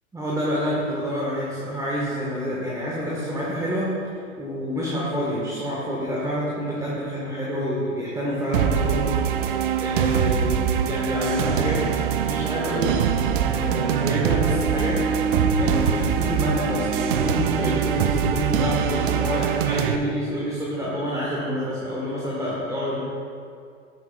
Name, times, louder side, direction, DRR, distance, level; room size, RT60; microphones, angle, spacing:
voice 1, 0.1-3.9 4.4-9.1 9.3-11.8 12.2-13.0 13.3-23.0, equal, 10° right, -6 dB, 1.7 m, -28 dB
sound 1, 8.5-20.0, right 7 dB, 45° right, 0.7 m, -23 dB
17.5 x 8.4 x 2.5 m, 2.4 s
figure-of-eight pair, 90°, 38 cm